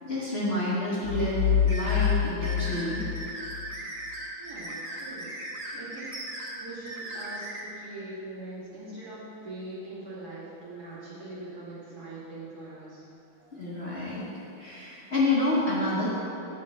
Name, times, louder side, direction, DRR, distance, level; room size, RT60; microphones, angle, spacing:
voice 1, 0.0-3.0 13.5-14.3 14.6-16.2, left 1 dB, 35° left, -8 dB, 1.6 m, -28 dB
sound 1, 1.0-3.7, left 9 dB, 75° left, 1.5 m, -27 dB
sound 2, 1.7-7.6, right 1 dB, 35° right, 1.6 m, -38 dB
voice 2, 4.4-6.2 6.6-13.0, right 2 dB, 50° right, -9 dB, 2.9 m, -42 dB
9.2 x 5.2 x 8.0 m, 3.0 s
omnidirectional pair, 2.2 m